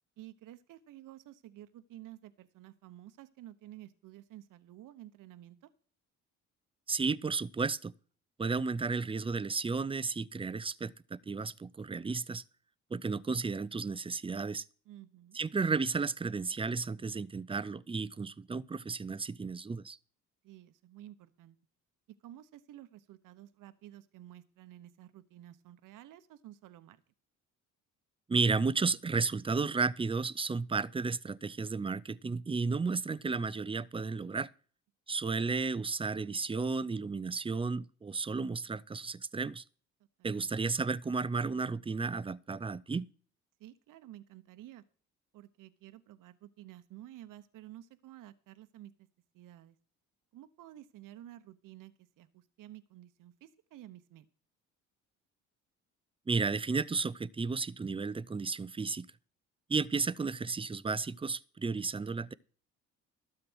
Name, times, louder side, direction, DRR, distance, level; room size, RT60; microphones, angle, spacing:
voice 1, 0.2-5.7 14.9-15.4 20.4-21.6 22.2-27.0 40.2-40.6 43.6-44.8 45.3-49.1 49.3-49.8 50.3-54.3, right 13 dB, 75° right, 1.0 m, -52 dB
voice 2, 6.9-7.9 8.4-12.4 12.9-14.6 15.3-20.0 28.3-34.5 35.1-39.6 40.2-43.1 56.3-59.1 59.7-62.3, right 4 dB, 15° right, 0.5 m, -33 dB
12.5 x 7.7 x 6.1 m
cardioid pair, 80°, 32 cm